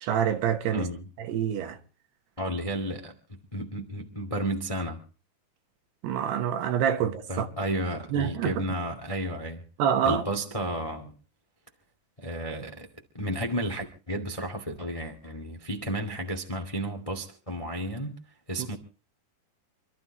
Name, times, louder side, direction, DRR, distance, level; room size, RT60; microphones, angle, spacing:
voice 1, 0.0-0.9 1.2-1.8 6.0-7.5 8.1-8.6 9.8-10.2 18.6-18.7, right 8 dB, 75° right, 3.1 m, -26 dB
voice 2, 0.7-1.1 2.4-5.0 7.3-9.6 10.0-11.1 12.2-12.9 13.1-18.2 18.5-18.7, right 1 dB, 55° left, 0.3 m, -32 dB
28.0 x 13.0 x 3.0 m
omnidirectional pair, 5.0 m